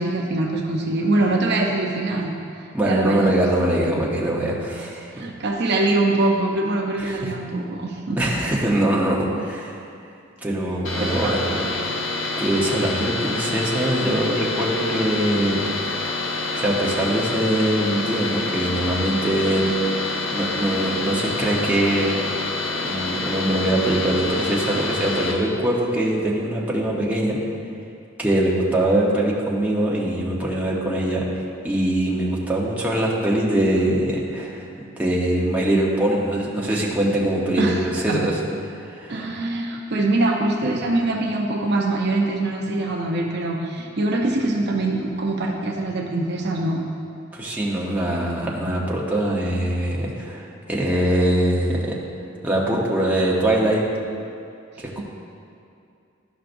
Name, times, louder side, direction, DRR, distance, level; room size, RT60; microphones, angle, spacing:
voice 1, 0.0-2.3 2.6-3.3 5.1-8.2 11.2-11.6 37.6-38.2 39.1-46.8, right 2 dB, 55° right, 0 dB, 0.7 m, -23 dB
voice 2, 2.7-5.1 7.0-7.3 8.2-9.8 10.4-11.6 12.4-15.6 16.5-19.7 20.3-22.3 22.7-27.4 28.2-31.2 31.6-34.7 35.0-38.3 38.8-39.2 47.3-51.9 52.4-53.8 55.0-55.1, right 1 dB, 5° right, -5 dB, 0.9 m, -22 dB
sound 1, 10.8-25.3, left 3 dB, 65° left, 0.9 m, -27 dB
12.0 x 5.5 x 2.6 m, 2.6 s
head